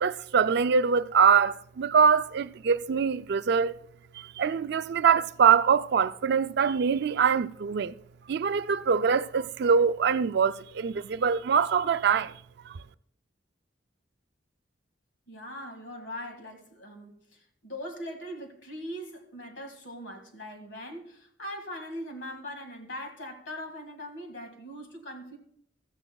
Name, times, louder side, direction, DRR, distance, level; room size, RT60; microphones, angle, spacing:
voice 1, 0.0-3.7 4.2-7.9 8.3-12.3 12.7-12.8, right 6 dB, 60° right, 0.4 m, -24 dB
voice 2, 15.3-25.4, equal, 75° left, 2.0 m, -41 dB
15.5 x 14.0 x 2.3 m
head